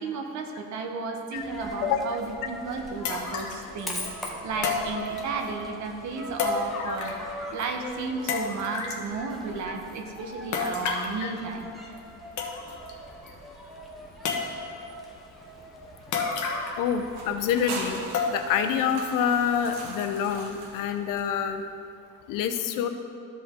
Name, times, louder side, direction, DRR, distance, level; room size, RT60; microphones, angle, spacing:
voice 1, 0.0-7.2 7.5-11.7, right 4 dB, 60° right, 4 dB, 1.1 m, -33 dB
Coin (dropping), 1.4-18.0, equal, ahead, 1.0 m, -41 dB
sound 1, 2.2-2.3 3.0-3.7 4.6-5.5 6.4-7.3 7.6-7.7 8.3-9.1 10.5-11.2 12.0-12.1 12.4-12.9 13.3-13.4 14.2-14.8 16.1-16.9 17.2-17.3 18.1-18.7 19.1-19.2 19.8-19.9, left 5 dB, 60° left, 1.2 m, -30 dB
voice 2, 16.8-21.6 22.3-22.9, left 8 dB, 80° left, 7 dB, 0.8 m, -27 dB
sound 2, 17.1-21.6, right 3 dB, 80° right, 1.5 m, -40 dB
14.0 x 5.2 x 3.7 m, 2.5 s
cardioid pair, 140°, 33 cm